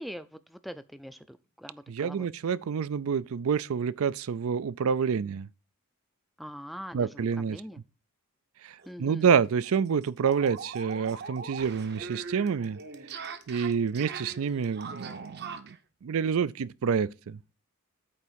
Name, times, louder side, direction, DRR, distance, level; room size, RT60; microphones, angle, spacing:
voice 1, 0.0-2.3 6.4-7.8 8.8-9.3, equal, ahead, 0.4 m, -43 dB
voice 2, 1.9-5.5 6.9-7.6 8.6-12.8 13.5-15.8 16.0-17.5, right 6 dB, 70° right, 0.4 m, -28 dB
sound 1, 8.8-8.9 9.2-9.3 9.6-15.8, right 5 dB, 45° right, 0.8 m, -41 dB
8.8 x 3.6 x 6.8 m
head